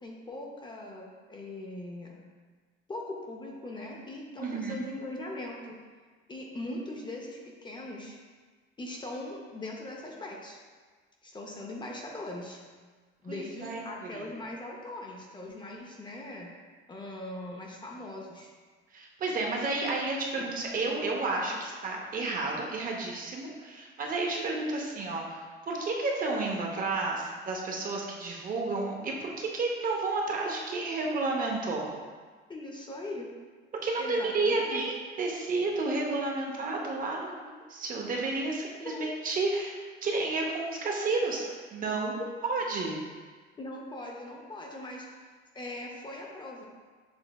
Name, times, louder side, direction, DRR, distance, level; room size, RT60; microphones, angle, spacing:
voice 1, 0.0-2.2 2.9-5.8 6.3-8.2 8.8-10.6 11.2-12.6 13.2-16.5 16.9-18.5 20.3-20.5 32.5-33.3 34.0-34.8 38.8-39.1 42.2-42.3 43.6-46.6, left 1 dB, 20° left, -1 dB, 0.6 m, -40 dB
voice 2, 4.4-4.8 13.3-14.3 18.9-32.0 33.8-34.9 35.2-42.1 42.4-43.0, right 3 dB, 40° right, 0 dB, 0.7 m, -31 dB
7.0 x 3.2 x 2.3 m, 1.5 s
cardioid pair, 125°, 21 cm